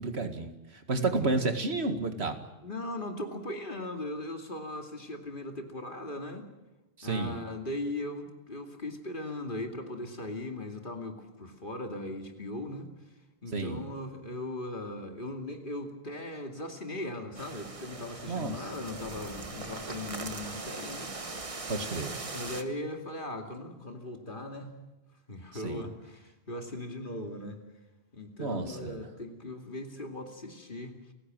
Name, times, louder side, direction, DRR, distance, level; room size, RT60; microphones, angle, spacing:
voice 1, 0.0-2.4 7.0-7.4 13.5-13.8 18.3-18.5 21.7-22.2 25.6-25.8 28.4-29.0, right 3 dB, 85° right, 7 dB, 2.2 m, -31 dB
voice 2, 0.9-1.3 2.6-6.5 7.0-12.9 13.4-21.4 22.3-24.8 25.3-27.6 28.1-30.9, left 1 dB, 55° left, 4 dB, 2.7 m, -39 dB
sound 1, 17.3-22.6, right 3 dB, 35° right, 1.3 m, -40 dB
29.5 x 16.5 x 7.7 m, 1.1 s
omnidirectional pair, 1.1 m